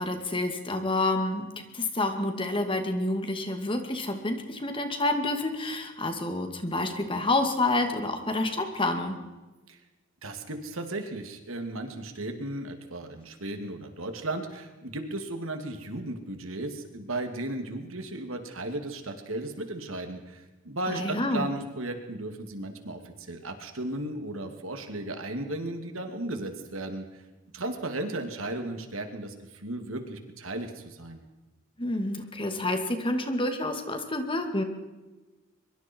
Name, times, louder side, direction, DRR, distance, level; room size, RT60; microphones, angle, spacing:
voice 1, 0.0-9.2 20.9-21.5 31.8-34.6, left 2 dB, 25° left, 6 dB, 2.4 m, -28 dB
voice 2, 10.2-27.2 27.5-31.2, right 2 dB, 80° right, 6 dB, 2.7 m, -35 dB
23.5 x 23.5 x 4.7 m, 1.1 s
head